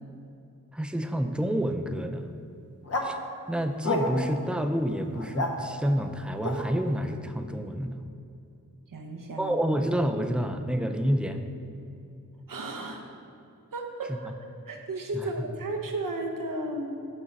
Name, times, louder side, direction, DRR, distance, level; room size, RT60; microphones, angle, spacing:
voice 1, 0.7-2.3 3.0-3.2 3.5-8.0 9.4-11.4 14.1-14.2 15.1-15.3, equal, 5° right, 6 dB, 0.4 m, -28 dB
sound 1, 2.8-3.1 3.8-4.4 5.1-5.5 6.4-6.6, left 2 dB, 45° left, 0.9 m, -29 dB
voice 2, 8.9-9.6 12.5-13.0 13.7-16.9, right 2 dB, 75° right, 2 dB, 0.8 m, -34 dB
6.2 x 3.8 x 6.0 m, 2.7 s
cardioid pair, 40°, 33 cm